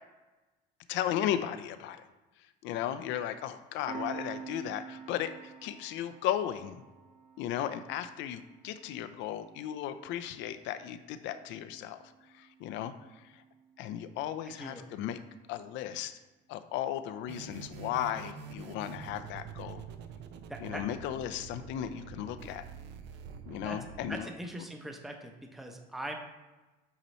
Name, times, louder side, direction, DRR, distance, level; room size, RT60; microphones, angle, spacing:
voice 1, 0.9-2.0 2.6-6.8 7.4-12.0 12.3-12.9 13.3-13.4 13.8-15.2 15.5-16.1 16.5-19.8 20.6-22.7 23.5-24.3, left 11 dB, 75° left, 11 dB, 0.5 m, -35 dB
Piano, 3.9-15.0, right 6 dB, 35° right, 1.0 m, -49 dB
voice 2, 14.4-14.9 20.5-20.8 23.6-23.8 24.1-26.1, right 1 dB, ahead, 3 dB, 0.7 m, -41 dB
sound 1, 17.3-24.1, right 6 dB, 65° right, 0.6 m, -46 dB
8.3 x 3.0 x 4.2 m, 1.1 s
cardioid pair, 115°, 20 cm